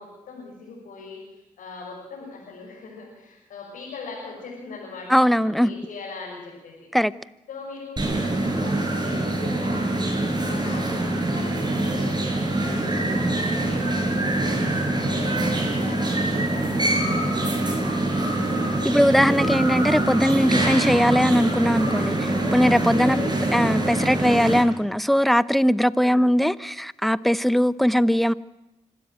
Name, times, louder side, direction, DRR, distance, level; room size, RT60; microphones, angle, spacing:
voice 1, 0.0-6.9 7.5-10.1 10.4-18.1 22.9-23.3 25.9-26.3, left 4 dB, 90° left, 6.5 m, -41 dB
voice 2, 5.1-5.7 6.9-7.1 18.8-23.2 23.5-28.3, equal, ahead, 0.8 m, -20 dB
sound 1, 8.0-24.6, right 2 dB, 35° right, 6.6 m, -24 dB
25.5 x 13.0 x 9.1 m
cardioid pair, 55°, 13 cm